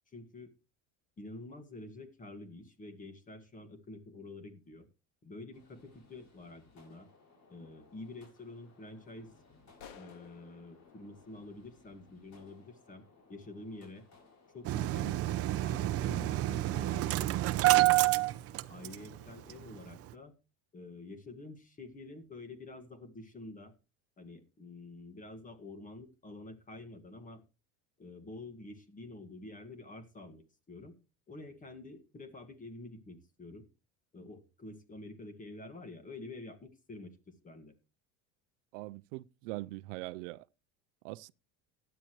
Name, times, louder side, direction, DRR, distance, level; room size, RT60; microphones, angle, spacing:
voice 1, 0.1-0.5 1.2-4.9 5.2-7.1 7.5-9.3 9.9-14.1 14.5-17.9 18.7-20.3 20.7-23.7 24.2-27.4 28.0-30.9 31.3-33.6 34.1-37.7, left 2 dB, 20° left, 1.8 m, -48 dB
sound 1, 5.5-20.0, left 3 dB, 50° left, 7.1 m, -62 dB
sound 2, 9.8-12.4, left 8 dB, 75° left, 2.2 m, -56 dB
Engine starting, 14.6-19.2 19.5-19.6 19.9-20.1, right 17 dB, 40° right, 0.7 m, -28 dB
voice 2, 38.7-40.4 41.0-41.3, right 20 dB, 90° right, 0.6 m, -42 dB
15.5 x 10.5 x 3.1 m
supercardioid pair, 130°, 36 cm